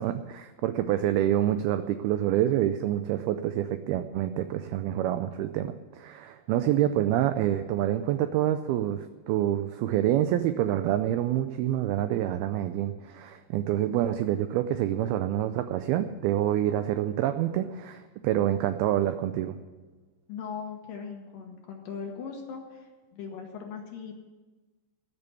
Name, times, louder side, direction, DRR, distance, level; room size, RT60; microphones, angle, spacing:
voice 1, 0.0-19.5, right 12 dB, 85° right, 9 dB, 2.2 m, -27 dB
voice 2, 20.3-24.1, left 6 dB, 65° left, 1 dB, 2.5 m, -39 dB
13.5 x 7.0 x 9.6 m, 1.2 s
omnidirectional pair, 5.0 m